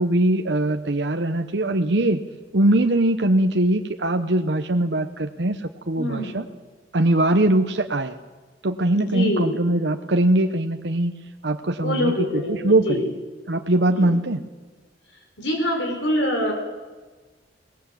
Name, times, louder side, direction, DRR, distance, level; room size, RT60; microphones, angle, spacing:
voice 1, 0.0-2.2 2.5-6.4 6.9-8.2 8.6-11.1 11.4-13.0 13.5-14.4, right 1 dB, 65° right, 5 dB, 1.0 m, -21 dB
voice 2, 6.0-6.4 9.0-9.5 11.8-13.0 13.8-14.1 15.4-16.5, equal, 85° left, 2 dB, 5.1 m, -25 dB
22.0 x 19.0 x 8.5 m, 1.3 s
head